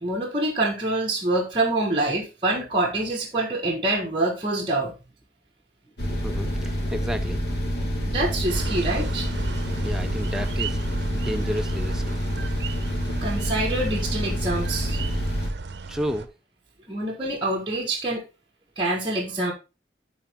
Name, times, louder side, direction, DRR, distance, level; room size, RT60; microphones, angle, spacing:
voice 1, 0.0-4.9 8.0-9.4 13.2-15.0 16.9-18.2 18.8-19.5, right 2 dB, 30° right, 1.4 m, -26 dB
sound 1, 6.0-15.5, equal, 65° left, 1.6 m, -27 dB
voice 2, 6.2-7.4 9.7-10.8 11.1-12.2 15.9-16.3, equal, 5° right, 0.5 m, -32 dB
sound 2, 8.5-16.3, right 4 dB, 75° right, 0.7 m, -36 dB
11.0 x 4.0 x 3.5 m
head